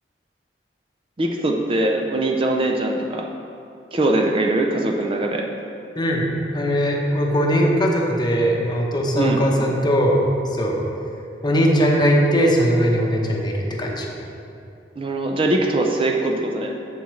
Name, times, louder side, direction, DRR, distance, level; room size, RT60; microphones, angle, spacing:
voice 1, 1.2-3.3 3.9-5.5 9.2-9.8 15.0-16.7, right 2 dB, 30° right, 1 dB, 0.5 m, -22 dB
voice 2, 6.0-10.2 10.5-10.8 11.4-14.1, equal, 25° left, -1 dB, 0.8 m, -20 dB
8.1 x 7.1 x 3.2 m, 2.6 s
head